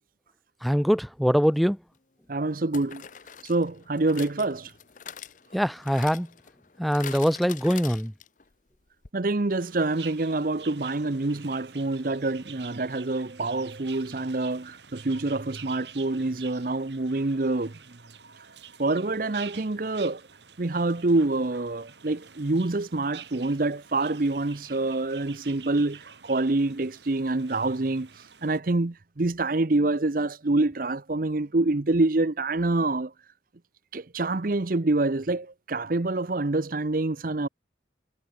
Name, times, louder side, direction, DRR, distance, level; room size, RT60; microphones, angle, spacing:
voice 1, 0.6-1.8 5.5-6.3 6.8-8.1, equal, ahead, 0.4 m, -23 dB
sound 1, 1.4-1.6 2.7-8.5 8.7-8.8 9.0-9.1, left 8 dB, 45° left, 0.8 m, -44 dB
voice 2, 2.3-3.0 3.4-4.7 9.1-18.0 18.8-20.2 20.6-28.1 28.4-33.1 33.9-37.5, right 2 dB, 50° right, 0.8 m, -26 dB
sound 2, 9.5-28.6, right 8 dB, 70° right, 3.7 m, -48 dB
head